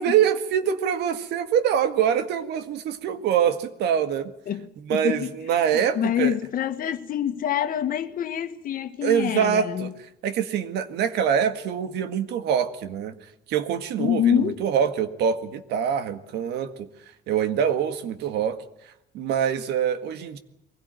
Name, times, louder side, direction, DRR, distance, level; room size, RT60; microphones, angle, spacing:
voice 1, 0.0-4.3 4.8-6.3 9.0-9.9 10.2-13.1 13.5-16.9 17.3-18.6 19.1-20.4, right 8 dB, 80° right, 1.8 m, -24 dB
voice 2, 4.5-5.3 5.9-9.9 14.0-14.6, left 10 dB, 55° left, 1.6 m, -26 dB
23.0 x 16.5 x 9.2 m
cardioid pair, 110°, 17 cm